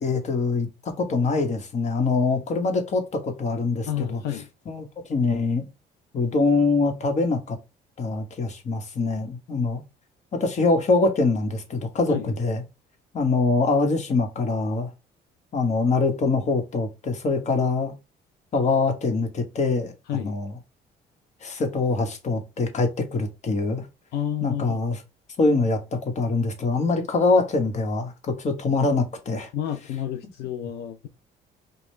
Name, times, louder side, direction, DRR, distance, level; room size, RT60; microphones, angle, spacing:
voice 1, 0.0-4.2 4.7-5.7 6.1-7.6 8.0-9.8 10.3-12.6 13.1-14.9 15.5-17.9 18.5-19.9 20.2-20.5 21.4-23.9 24.4-25.0 25.4-29.5, left 3 dB, 45° left, 1.2 m, -24 dB
voice 2, 3.9-4.5 12.1-12.3 20.1-20.3 24.1-24.8 29.5-31.1, left 10 dB, 75° left, 0.5 m, -30 dB
5.1 x 2.3 x 3.2 m
cardioid pair, 110°, 17 cm